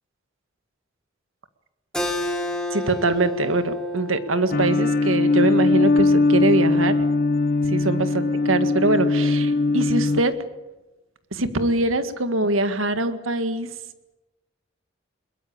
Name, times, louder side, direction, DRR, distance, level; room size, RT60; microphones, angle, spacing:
Keyboard (musical), 1.9-7.1, left 1 dB, 5° left, 3.3 m, -31 dB
voice 1, 2.7-7.0 7.7-10.4 11.3-13.7, right 2 dB, 85° right, 10 dB, 1.9 m, -23 dB
sound 1, 4.5-10.2, left 3 dB, 50° left, 1.1 m, -20 dB
22.0 x 21.5 x 8.8 m, 1.0 s
head